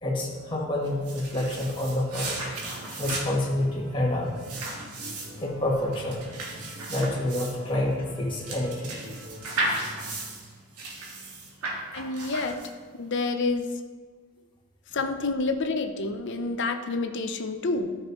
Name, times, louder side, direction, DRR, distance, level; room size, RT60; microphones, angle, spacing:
voice 1, 0.0-2.4 3.0-4.4 5.4-6.3 6.9-8.9, left 1 dB, 20° left, -4 dB, 1.2 m, -28 dB
sound 1, 0.8-13.0, right 2 dB, 85° right, 1.6 m, -35 dB
sound 2, 2.2-10.2, left 1 dB, 65° right, 2.1 m, -45 dB
voice 2, 11.9-12.6 13.0-13.7 14.9-18.0, left 3 dB, 55° left, 6 dB, 0.6 m, -28 dB
13.0 x 5.9 x 3.0 m, 1.5 s
head